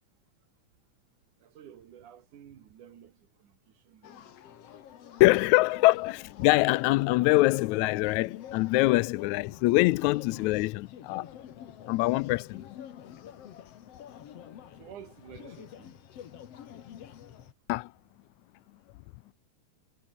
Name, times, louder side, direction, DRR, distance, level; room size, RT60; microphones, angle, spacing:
voice 1, 1.4-4.4 14.8-16.1, right 9 dB, 80° right, 3.5 m, -51 dB
sound 1, 4.0-17.5, left 10 dB, 60° left, 2.4 m, -48 dB
voice 2, 5.2-11.2 11.9-12.8 17.7-17.9, left 20 dB, 80° left, 1.8 m, -24 dB
omnidirectional pair, 3.5 m